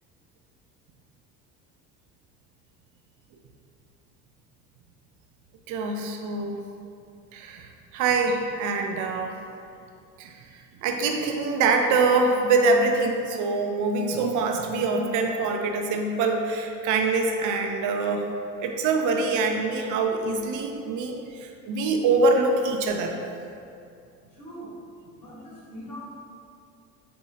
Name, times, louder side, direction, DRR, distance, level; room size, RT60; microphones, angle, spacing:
voice 1, 5.7-6.6 7.3-9.3 10.2-10.4 10.8-18.3 18.6-23.2, right 3 dB, 40° right, 3 dB, 0.5 m, -24 dB
voice 2, 24.3-24.7 25.1-26.0, equal, 90° left, -8 dB, 1.4 m, -41 dB
4.3 x 3.5 x 2.8 m, 2.4 s
hypercardioid pair, 70°, 47 cm